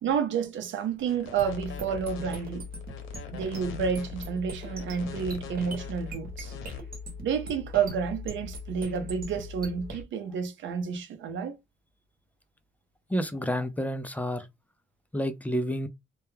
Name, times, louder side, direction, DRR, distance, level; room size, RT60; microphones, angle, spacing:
voice 1, 0.0-2.7 3.3-6.5 7.2-11.5, right 6 dB, 70° right, 0.7 m, -30 dB
sound 1, 1.0-6.8, left 6 dB, 85° left, 0.7 m, -44 dB
sound 2, 1.4-10.0, left 2 dB, 50° right, 1.0 m, -40 dB
voice 2, 13.1-14.5 15.1-15.9, equal, 10° left, 0.4 m, -29 dB
2.2 x 2.2 x 3.1 m
cardioid pair, 90°, 20 cm